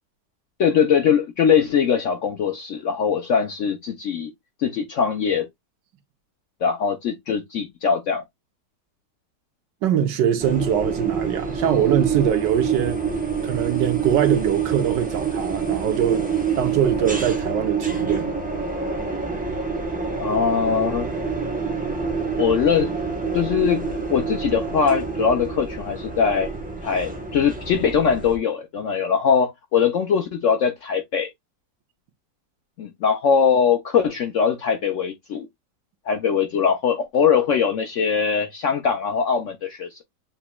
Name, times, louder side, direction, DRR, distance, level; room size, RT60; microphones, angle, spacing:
voice 1, 0.6-4.3 4.6-5.5 6.6-8.2 20.2-21.1 22.4-22.9 23.3-26.5 26.8-31.3 32.8-35.5 36.1-40.0, left 7 dB, 65° left, 0.7 m, -21 dB
voice 2, 9.8-13.0 13.4-16.3 16.6-18.3, right 9 dB, 80° right, 1.5 m, -22 dB
sound 1, 10.4-28.4, right 5 dB, 5° right, 0.7 m, -27 dB
7.2 x 2.9 x 2.2 m
omnidirectional pair, 1.9 m